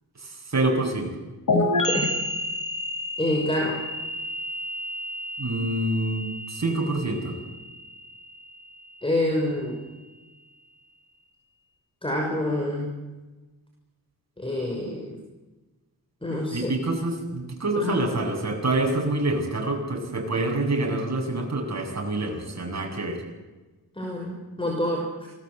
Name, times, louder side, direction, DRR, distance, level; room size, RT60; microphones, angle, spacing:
voice 1, 0.2-1.1 5.4-7.4 16.5-23.2, right 2 dB, 45° right, 1 dB, 8.0 m, -26 dB
sound 1, 1.5-9.0, left 2 dB, 60° left, 4.9 m, -30 dB
voice 2, 3.2-3.8 9.0-9.8 12.0-12.9 14.4-15.2 16.2-16.7 17.8-18.0 24.0-25.3, left 1 dB, 15° left, 0 dB, 5.9 m, -27 dB
27.5 x 20.0 x 8.3 m, 1.2 s
wide cardioid pair, 105°, 37 cm